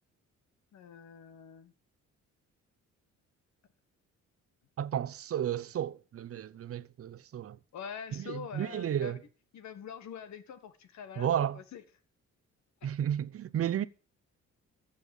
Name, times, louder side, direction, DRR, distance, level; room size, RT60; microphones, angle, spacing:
voice 1, 0.7-1.7 7.7-9.2 9.5-11.8, left 7 dB, 65° left, 1.6 m, -45 dB
voice 2, 4.8-7.6 8.1-9.2 11.2-11.6 12.8-13.9, right 10 dB, 50° right, 0.8 m, -33 dB
14.5 x 5.7 x 7.1 m
cardioid pair, 90°, 30 cm